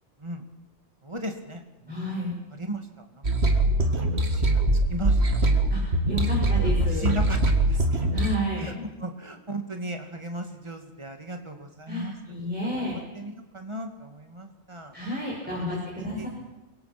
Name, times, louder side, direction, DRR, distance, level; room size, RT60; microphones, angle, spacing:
voice 1, 1.0-2.2 2.5-3.9 4.3-4.6 4.9-5.5 6.9-7.9 8.1-8.3 8.6-8.7 9.0-12.1 12.8-14.9 15.4-16.3, right 2 dB, 20° right, 5 dB, 2.3 m, -37 dB
voice 2, 1.9-2.4 5.7-7.2 8.1-8.9 11.9-13.0 14.9-16.3, equal, 5° right, -5 dB, 6.3 m, -31 dB
sound 1, 3.2-8.4, right 1 dB, 55° right, 2.2 m, -22 dB
25.0 x 22.5 x 6.1 m, 1.1 s
omnidirectional pair, 1.3 m